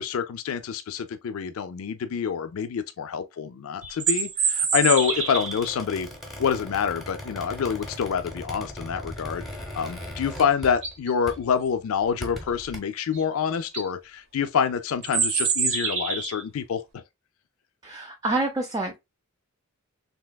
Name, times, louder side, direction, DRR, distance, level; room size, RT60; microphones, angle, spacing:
voice 1, 0.0-6.1 6.4-9.4 9.7-16.8, left 7 dB, 70° left, 0.4 m, -27 dB
sound 1, 3.8-5.7 10.2-10.3 10.7-11.1 13.1-13.2 13.6-13.9 15.0-16.4, right 6 dB, 65° right, 0.8 m, -26 dB
Squeak, 4.9-11.0 11.3-11.5 12.0-12.8, equal, ahead, 0.8 m, -39 dB
voice 2, 17.8-19.0, right 2 dB, 15° right, 0.3 m, -27 dB
3.4 x 2.9 x 2.2 m
head